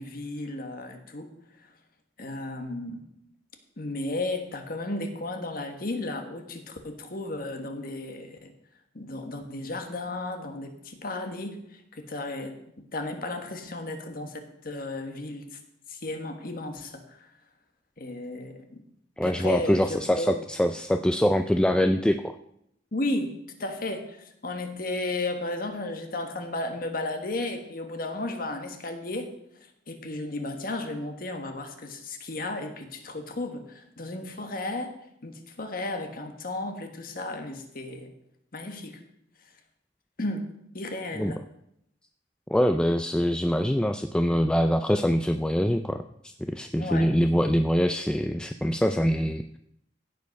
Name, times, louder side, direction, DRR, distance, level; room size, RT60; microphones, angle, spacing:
voice 1, 0.0-1.3 1.6-1.7 2.2-3.0 3.8-8.5 8.9-12.5 12.9-15.6 15.9-17.3 18.0-18.8 19.2-20.3 22.9-23.3 23.6-29.3 29.9-34.9 35.2-38.1 38.5-39.0 40.2-41.4 46.8-47.1, left 2 dB, 50° left, 5 dB, 1.4 m, -34 dB
voice 2, 19.2-22.3 41.2-41.3 42.5-49.6, equal, 5° left, 7 dB, 0.3 m, -24 dB
15.5 x 5.4 x 5.3 m, 0.76 s
head